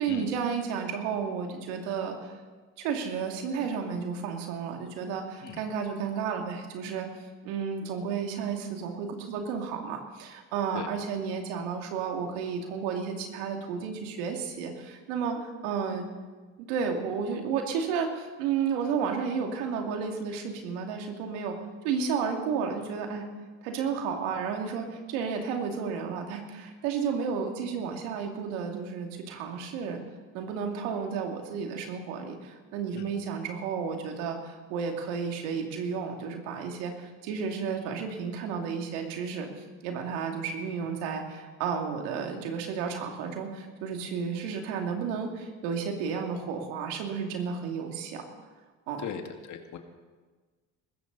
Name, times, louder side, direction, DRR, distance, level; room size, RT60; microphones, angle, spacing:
voice 1, 0.0-2.3 2.8-7.1 7.4-16.1 16.6-21.6 21.8-23.3 23.6-30.0 30.3-39.5 39.8-48.3 48.9-49.0, right 6 dB, 80° right, 3 dB, 2.5 m, -32 dB
voice 2, 49.5-49.8, left 9 dB, 55° left, 5 dB, 2.0 m, -38 dB
20.0 x 15.5 x 4.0 m, 1.4 s
supercardioid pair, 85°, 36 cm